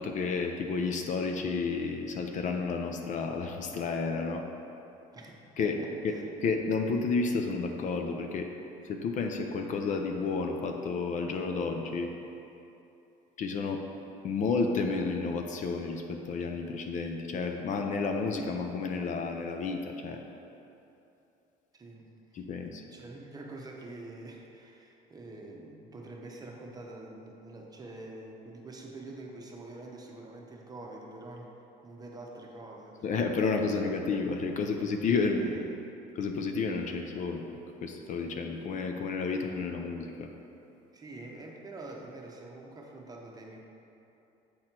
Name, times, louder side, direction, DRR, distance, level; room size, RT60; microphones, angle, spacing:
voice 1, 0.0-4.4 5.6-5.8 6.0-8.5 8.8-12.1 13.4-13.8 14.2-20.2 22.3-22.8 33.0-35.6 36.1-37.5 37.8-40.3, left 4 dB, 50° left, 4 dB, 0.6 m, -31 dB
voice 2, 5.1-6.2 21.7-22.4 22.9-31.5 31.8-33.1 35.3-35.6 39.6-39.7 40.9-43.6, right 2 dB, 20° right, 0 dB, 0.9 m, -46 dB
7.7 x 4.2 x 4.4 m, 2.9 s
cardioid pair, 105°, 17 cm